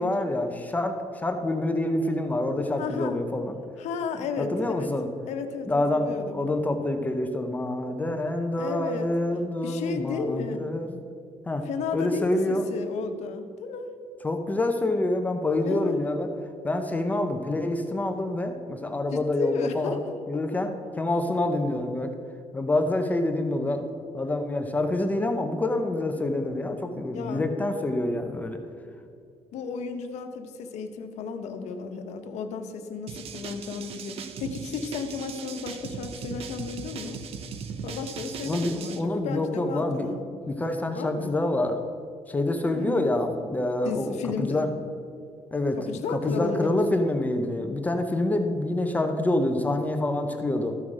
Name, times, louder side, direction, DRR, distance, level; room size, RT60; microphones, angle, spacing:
voice 1, 0.0-3.5 4.4-5.1 5.7-11.0 11.5-11.6 11.9-12.7 14.2-16.3 16.6-20.0 20.3-22.1 22.5-23.8 24.1-28.6 38.5-40.1 40.5-41.8 42.3-44.7 45.5-45.8 46.1-50.8, left 1 dB, 15° left, 5 dB, 0.6 m, -27 dB
voice 2, 2.8-3.2 3.8-4.9 5.3-6.4 8.6-9.1 9.6-10.6 11.6-13.9 15.6-16.0 19.1-20.2 27.1-27.5 29.5-37.2 37.8-40.2 40.9-41.4 42.7-43.1 43.8-44.7 45.8-46.8, left 5 dB, 80° left, 6 dB, 1.0 m, -33 dB
sound 1, 33.1-39.0, right 5 dB, 60° right, 0.7 m, -38 dB
13.5 x 5.8 x 4.8 m, 2.4 s
cardioid pair, 160°, 11 cm